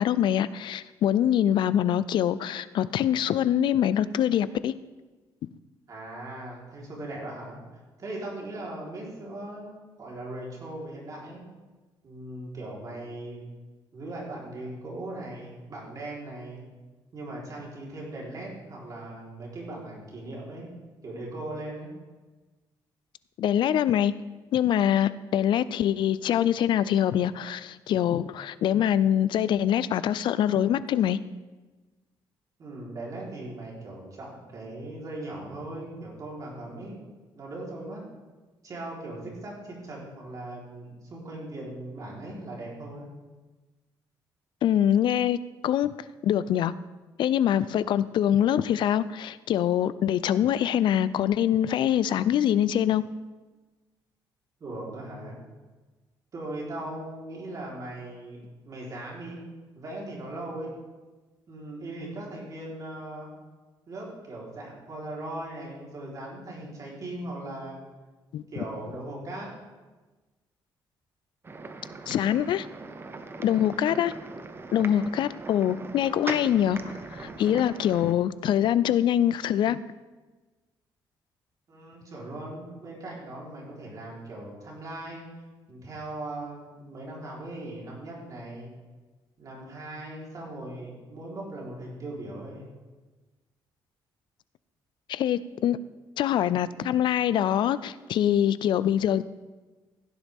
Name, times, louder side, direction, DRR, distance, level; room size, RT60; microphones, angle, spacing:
voice 1, 0.0-4.7 23.4-24.1 24.5-31.2 44.6-45.4 45.6-45.9 46.2-46.7 47.2-53.0 68.3-68.4 72.1-72.7 73.4-74.1 74.7-79.8 95.1-95.8 96.2-99.2, left 10 dB, 70° left, 16 dB, 0.4 m, -24 dB
voice 2, 5.9-7.6 8.0-11.4 12.0-13.4 13.9-16.7 17.1-20.7 21.0-21.9 32.6-37.0 37.3-38.0 38.6-43.1 54.6-55.4 56.3-59.4 59.7-60.7 61.5-63.3 63.9-67.8 68.5-69.5 81.7-85.2 85.7-88.7 89.4-92.7, right 1 dB, 45° right, -4 dB, 3.9 m, -39 dB
sound 1, 71.4-78.1, right 3 dB, 25° right, 0.8 m, -40 dB
16.0 x 10.5 x 3.6 m, 1.2 s
cardioid pair, 115°, 8 cm